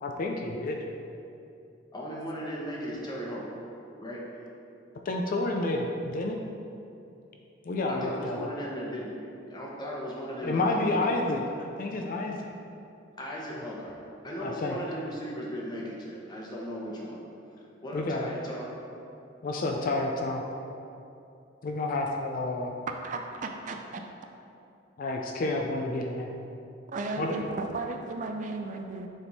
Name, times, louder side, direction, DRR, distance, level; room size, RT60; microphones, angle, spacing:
voice 1, 0.0-0.8 5.1-6.4 7.7-8.5 10.4-12.4 14.4-14.8 17.9-18.3 19.4-20.4 21.6-22.7 25.0-26.3 27.2-27.3, left 2 dB, 45° left, 2 dB, 0.4 m, -29 dB
voice 2, 1.9-3.5 4.0-4.4 7.9-11.3 13.2-14.0 14.2-17.2 17.8-18.7 27.2-27.4, equal, 20° left, -4 dB, 1.0 m, -37 dB
voice 3, 23.0-24.0 26.9-29.1, right 3 dB, 40° right, 4 dB, 0.4 m, -35 dB
7.1 x 3.5 x 4.0 m, 2.7 s
head